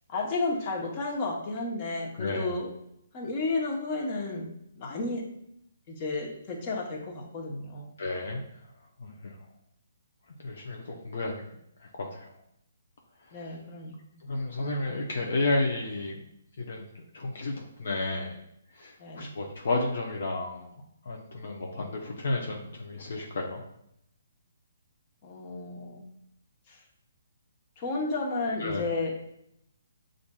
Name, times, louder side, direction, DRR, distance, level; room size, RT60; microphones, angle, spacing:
voice 1, 0.1-2.7 3.1-4.5 4.8-5.2 5.9-7.9 13.3-14.2 19.0-19.3 25.2-26.0 26.7-26.8 27.8-29.1, left 3 dB, 35° left, 0 dB, 0.9 m, -32 dB
voice 2, 8.0-8.4 9.0-9.4 10.4-11.4 11.8-12.3 13.3-13.6 14.2-16.2 16.6-18.4 18.7-20.7 21.0-23.6 28.6-28.9, left 2 dB, 65° left, 0 dB, 0.6 m, -32 dB
7.0 x 2.5 x 2.3 m, 0.76 s
hypercardioid pair, 145°, 0 cm